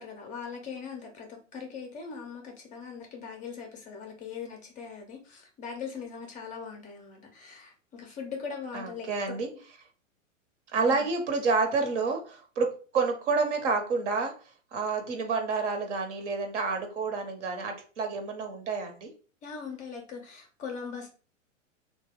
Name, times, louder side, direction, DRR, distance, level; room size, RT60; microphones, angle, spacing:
voice 1, 0.0-9.4 10.9-11.0 19.4-21.1, left 6 dB, 20° left, 2 dB, 0.5 m, -40 dB
voice 2, 8.7-9.5 10.7-12.7 12.9-14.3 14.7-19.1, right 4 dB, 60° right, 4 dB, 1.0 m, -29 dB
2.9 x 2.2 x 3.4 m, 0.38 s
hypercardioid pair, 105°, 39 cm